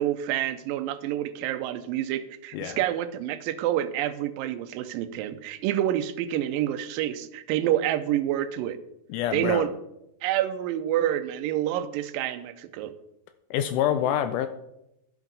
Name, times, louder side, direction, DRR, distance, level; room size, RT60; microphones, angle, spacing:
voice 1, 0.0-8.8 9.3-9.7 10.2-12.9, right 12 dB, 85° right, 11 dB, 2.3 m, -28 dB
voice 2, 9.1-9.7 13.5-14.5, left 10 dB, 80° left, 10 dB, 1.8 m, -26 dB
11.0 x 7.3 x 3.9 m, 0.86 s
omnidirectional pair, 4.0 m